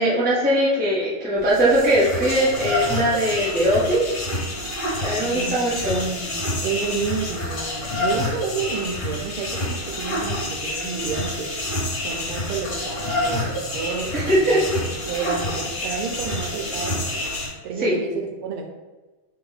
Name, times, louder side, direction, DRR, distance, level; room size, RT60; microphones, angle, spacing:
voice 1, 0.0-4.0 5.0-6.0 14.1-14.6 17.8-18.0, right 1 dB, 10° right, -8 dB, 0.6 m, -20 dB
sound 1, 1.4-17.5, left 1 dB, 40° left, 1.7 m, -28 dB
voice 2, 5.2-11.5 12.0-17.2 17.6-18.7, right 5 dB, 85° right, 2 dB, 1.5 m, -30 dB
3.8 x 2.9 x 3.9 m, 1.2 s
omnidirectional pair, 2.4 m